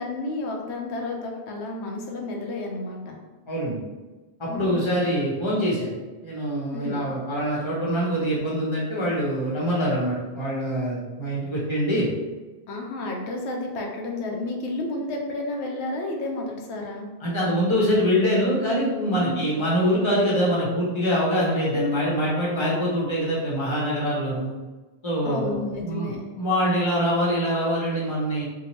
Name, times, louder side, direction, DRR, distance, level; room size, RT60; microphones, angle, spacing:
voice 1, 0.0-3.2 4.5-5.0 6.7-7.1 12.7-17.1 19.2-19.5 25.2-26.2, left 2 dB, 80° left, 1 dB, 0.9 m, -31 dB
voice 2, 3.5-3.8 4.4-5.9 6.2-12.1 17.2-24.5 25.0-25.6 25.8-28.4, equal, 30° left, -6 dB, 0.7 m, -24 dB
2.7 x 2.2 x 3.0 m, 1.2 s
omnidirectional pair, 1.1 m